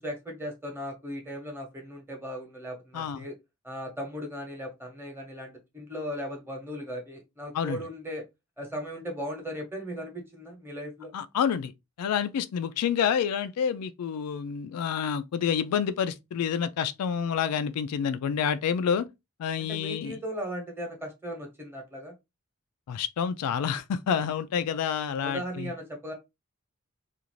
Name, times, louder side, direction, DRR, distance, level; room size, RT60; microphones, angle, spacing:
voice 1, 0.0-3.3 3.6-8.2 8.6-11.1 19.6-22.1 25.2-26.1, equal, 10° right, 0.9 m, -37 dB
voice 2, 2.9-3.2 7.5-7.8 11.1-11.7 12.0-19.1 19.4-20.2 22.9-25.7, left 7 dB, 90° left, 0.3 m, -28 dB
2.5 x 2.4 x 3.0 m
head